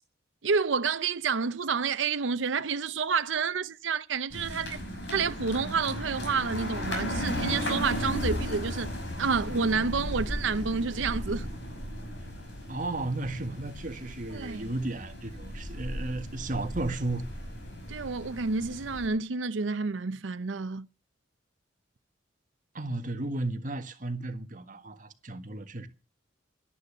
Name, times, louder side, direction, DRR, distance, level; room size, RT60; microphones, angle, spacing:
voice 1, 0.4-4.8 5.1-8.9 9.2-11.5 14.3-14.7 17.9-20.9, right 5 dB, 85° right, 0.7 m, -29 dB
sound 1, 4.3-19.1, equal, 70° left, 5.6 m, -35 dB
voice 2, 12.7-17.3 22.7-25.9, right 2 dB, 45° right, 1.6 m, -34 dB
11.5 x 11.0 x 8.4 m
head